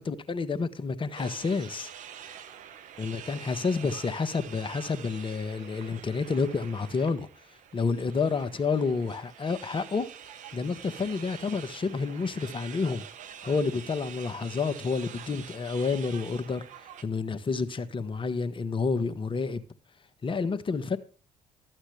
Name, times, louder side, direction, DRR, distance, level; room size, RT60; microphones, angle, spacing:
voice 1, 0.0-1.9 3.0-7.3 7.7-10.1 10.5-13.0 13.4-16.6 17.0-19.6 20.2-21.0, left 4 dB, 35° left, 1.2 m, -29 dB
sound 1, 1.1-17.0, right 9 dB, 55° right, 0.9 m, -46 dB
13.0 x 8.8 x 3.3 m
figure-of-eight pair, 50°, 15 cm